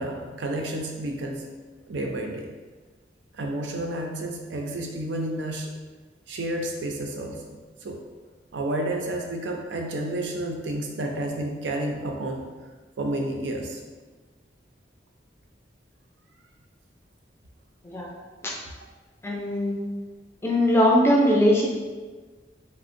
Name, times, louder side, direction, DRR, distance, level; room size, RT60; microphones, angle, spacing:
voice 1, 0.0-1.4 1.9-2.5 3.3-5.7 6.3-7.6 7.8-8.0 8.5-12.4 13.0-13.8, right 1 dB, 85° right, 2 dB, 0.4 m, -30 dB
voice 2, 19.2-19.8 20.4-21.7, equal, 15° left, -2 dB, 0.4 m, -20 dB
3.5 x 2.1 x 2.5 m, 1.4 s
head